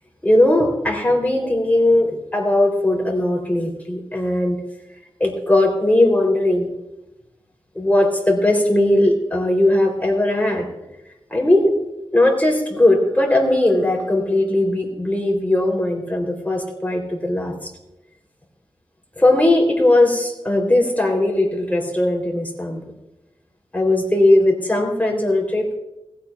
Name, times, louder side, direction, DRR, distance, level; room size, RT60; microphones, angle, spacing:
voice 1, 0.2-4.6 5.2-6.7 7.7-10.6 11.3-11.7 12.1-17.7 19.2-22.8 23.7-25.8, left 1 dB, 15° left, 0 dB, 3.3 m, -18 dB
17.5 x 15.5 x 2.4 m, 0.94 s
wide cardioid pair, 75°, 10 cm